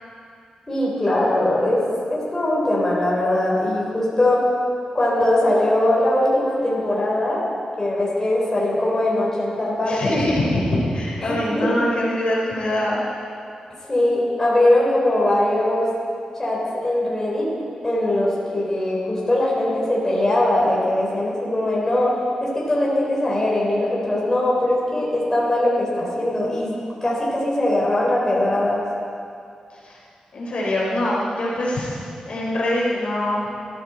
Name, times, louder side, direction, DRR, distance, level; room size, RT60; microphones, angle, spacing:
voice 1, 0.7-1.8 2.1-4.4 4.9-7.4 7.8-10.1 11.2-11.7 13.9-15.9 16.4-17.5 17.8-26.7 27.0-28.8, left 1 dB, 20° left, -6 dB, 4.1 m, -21 dB
voice 2, 9.9-13.1 29.8-30.0 30.3-31.9 32.2-33.5, left 1 dB, 55° left, -5 dB, 3.9 m, -23 dB
21.5 x 14.0 x 4.4 m, 2.4 s
wide cardioid pair, 165°, 2 cm